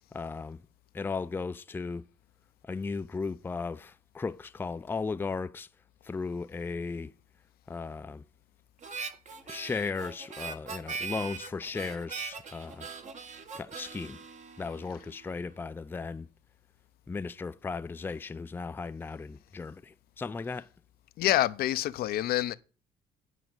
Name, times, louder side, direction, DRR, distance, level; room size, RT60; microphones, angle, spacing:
voice 1, 0.1-0.6 0.9-2.0 2.6-5.7 6.0-7.1 7.7-8.3 9.5-12.9 13.6-14.2 14.6-16.3 17.1-20.7, left 4 dB, 10° left, 0.4 m, -36 dB
Harmonica, 8.8-15.3, right 5 dB, 45° right, 1.5 m, -41 dB
voice 2, 21.2-22.5, left 14 dB, 65° left, 0.6 m, -27 dB
9.1 x 5.0 x 7.9 m
cardioid pair, 110°, 17 cm